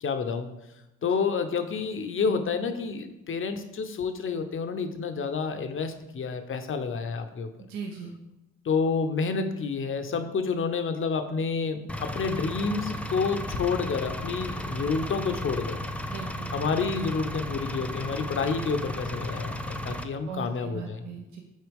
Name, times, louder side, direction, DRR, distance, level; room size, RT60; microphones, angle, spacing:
voice 1, 0.0-0.5 1.0-7.5 8.6-15.8 16.5-21.0, left 5 dB, 40° left, 8 dB, 0.7 m, -29 dB
voice 2, 7.6-8.1 16.1-16.5 20.3-21.4, right 6 dB, 70° right, 1 dB, 0.9 m, -39 dB
Engine, 11.9-20.0, equal, 5° left, 0.4 m, -34 dB
6.3 x 4.3 x 3.5 m, 0.94 s
supercardioid pair, 60°, 30 cm